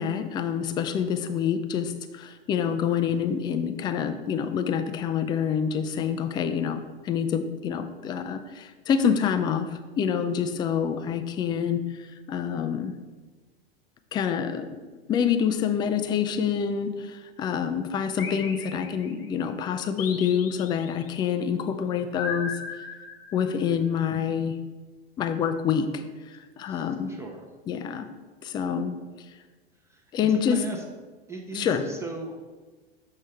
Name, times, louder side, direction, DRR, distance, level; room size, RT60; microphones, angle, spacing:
voice 1, 0.0-12.9 14.1-14.8 15.1-22.9 23.3-24.6 25.2-27.1 27.7-28.1 28.4-28.9 30.1-30.6 31.5-31.9, left 7 dB, 15° left, 9 dB, 0.3 m, -27 dB
sound 1, 18.2-19.3 20.0-21.1 22.2-23.7, left 5 dB, 65° left, 0.9 m, -37 dB
voice 2, 26.7-27.4 30.5-30.8 31.3-32.4, right 3 dB, 10° right, 1 dB, 0.7 m, -38 dB
7.4 x 5.3 x 3.4 m, 1.3 s
figure-of-eight pair, 90°, 31 cm